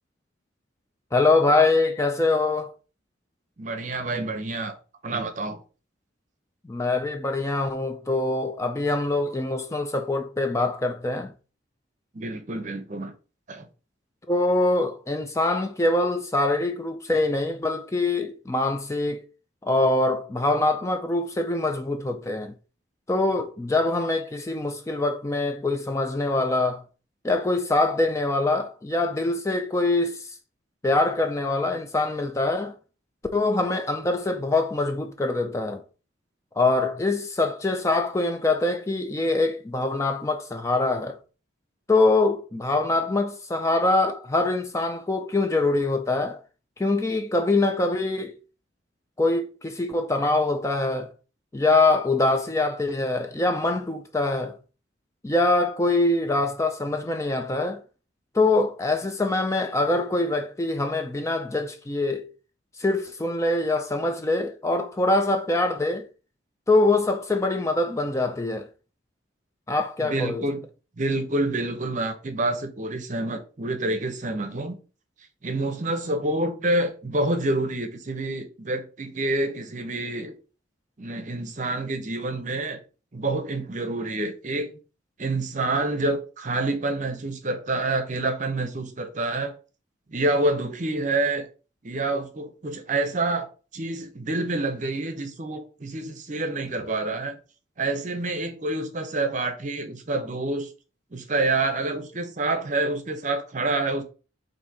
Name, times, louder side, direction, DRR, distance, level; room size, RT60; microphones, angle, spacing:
voice 1, 1.1-2.7 6.7-11.3 14.3-19.2 19.6-22.5 23.1-26.8 27.2-30.4 30.8-32.7 33.3-35.8 36.6-41.2 41.9-46.4 46.8-48.4 49.2-51.1 51.5-54.5 55.2-57.8 58.3-62.3 62.8-66.0 66.7-68.7 69.7-70.4, left 2 dB, 15° left, 0.4 m, -24 dB
voice 2, 3.6-4.8 5.0-5.6 12.1-13.1 13.5-13.7 70.0-70.6 71.0-74.8 75.4-80.3 81.0-82.8 83.1-84.7 85.2-89.5 90.1-91.5 91.8-93.5 93.7-97.4 97.8-100.7 101.1-104.0, right 2 dB, 40° right, 0.7 m, -27 dB
4.2 x 2.7 x 4.6 m
head